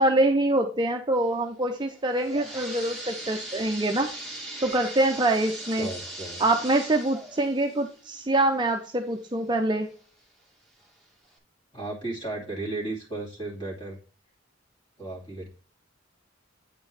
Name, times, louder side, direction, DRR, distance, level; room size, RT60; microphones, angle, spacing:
voice 1, 0.0-4.1 4.6-5.9 6.4-9.9, right 2 dB, 25° right, 4 dB, 0.6 m, -25 dB
sound 1, 1.9-9.5 10.0-10.1 10.8-10.9 11.3-11.4, right 1 dB, 5° left, 1.6 m, -40 dB
voice 2, 5.8-6.4 11.7-14.0 15.0-15.5, right 2 dB, 25° left, -2 dB, 2.6 m, -34 dB
8.8 x 4.5 x 3.3 m, 0.38 s
head